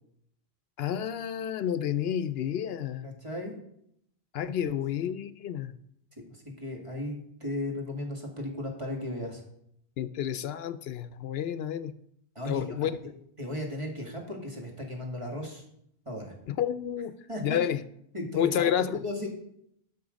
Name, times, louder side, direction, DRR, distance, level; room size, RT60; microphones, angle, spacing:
voice 1, 0.8-3.1 4.3-5.8 10.0-11.9 12.5-13.0 16.5-17.1 17.4-17.8 18.3-19.0, left 9 dB, 75° left, 13 dB, 0.8 m, -30 dB
voice 2, 3.0-3.5 4.7-4.8 6.3-9.4 12.4-12.9 13.4-15.6 16.1-16.3 17.3-17.6 18.1-18.7 19.0-19.3, left 1 dB, 30° right, 0 dB, 2.2 m, -36 dB
12.0 x 6.1 x 5.2 m, 0.73 s
omnidirectional pair, 1.0 m